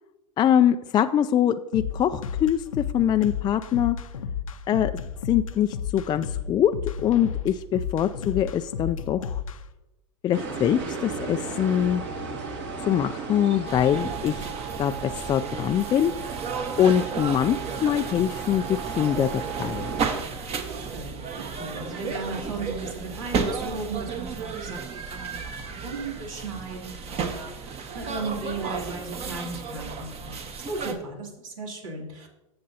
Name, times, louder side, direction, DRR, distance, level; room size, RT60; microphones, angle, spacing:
voice 1, 0.4-4.0 4.7-4.9 5.2-6.7 7.0-9.4 10.2-12.0 12.9-14.5 14.8-16.1 16.8-19.9, left 10 dB, 25° left, 8 dB, 0.3 m, -23 dB
sound 1, 1.7-9.6, left 7 dB, 85° left, 0.7 m, -32 dB
sound 2, 10.3-20.1, right 5 dB, 55° right, 2.5 m, -35 dB
sound 3, 13.7-30.9, right 5 dB, 35° right, 1.5 m, -33 dB
voice 2, 20.7-21.2 21.6-32.3, right 3 dB, 80° right, -1 dB, 3.1 m, -36 dB
15.5 x 6.6 x 2.8 m, 0.99 s
hypercardioid pair, 100°, 17 cm